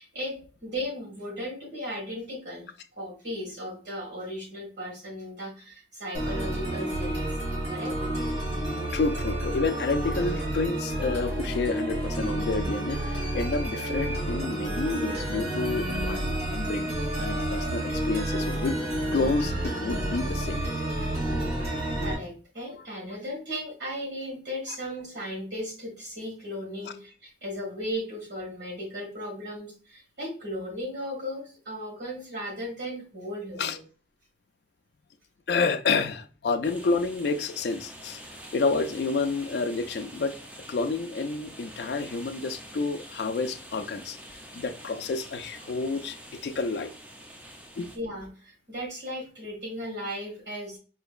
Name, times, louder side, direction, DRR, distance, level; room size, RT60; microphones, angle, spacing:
voice 1, 0.0-2.6 3.0-7.3 7.6-7.9 22.0-33.8 47.9-50.8, equal, 85° right, 1.7 m, -36 dB
sound 1, 6.1-22.1, right 1 dB, 40° right, 1.8 m, -30 dB
voice 2, 8.9-18.8 19.1-20.6 26.8-26.9 33.6-33.8 35.5-38.2 38.5-40.3 40.7-44.2 44.5-46.2 46.4-46.9 47.8-47.9, left 4 dB, 65° left, 0.3 m, -29 dB
sound 2, 36.6-48.0, right 1 dB, 10° right, 0.4 m, -46 dB
4.4 x 2.9 x 2.4 m
head